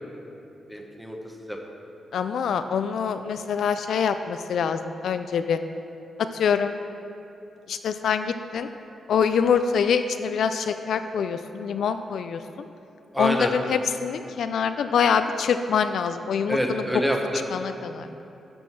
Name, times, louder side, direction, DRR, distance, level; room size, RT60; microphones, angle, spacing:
voice 1, 0.7-1.6 13.1-13.5 16.5-17.4, equal, ahead, 1 dB, 0.8 m, -27 dB
voice 2, 2.1-5.6 6.3-6.7 7.7-8.7 9.1-12.4 13.2-16.8 17.5-18.1, left 6 dB, 70° left, 9 dB, 0.3 m, -25 dB
11.5 x 6.2 x 4.6 m, 2.8 s
wide cardioid pair, 165°, 0 cm